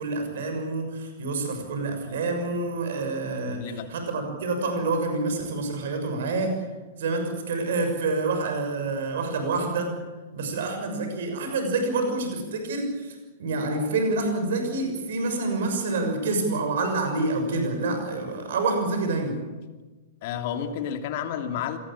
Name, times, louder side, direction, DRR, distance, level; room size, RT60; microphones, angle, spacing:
voice 1, 0.0-6.7 7.0-9.9 10.3-19.4, right 3 dB, 60° right, 5 dB, 6.5 m, -27 dB
voice 2, 3.5-3.9 20.2-21.8, left 8 dB, 45° left, 6 dB, 2.9 m, -31 dB
26.5 x 19.5 x 8.8 m, 1.3 s
figure-of-eight pair, 105°, 0 cm